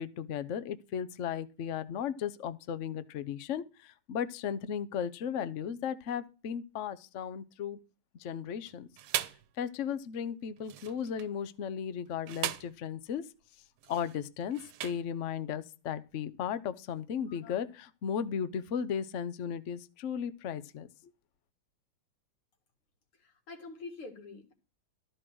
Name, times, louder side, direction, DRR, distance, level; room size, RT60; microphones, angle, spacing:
voice 1, 0.0-7.8 8.2-8.9 9.6-13.2 13.9-20.9, left 8 dB, 65° left, 0.7 m, -35 dB
sound 1, 8.7-9.5 10.6-11.3 12.1-12.8 13.8-15.2, right 12 dB, 80° right, 1.6 m, -38 dB
voice 2, 23.2-24.5, left 3 dB, 80° left, 3.0 m, -46 dB
13.0 x 5.2 x 6.2 m
omnidirectional pair, 2.3 m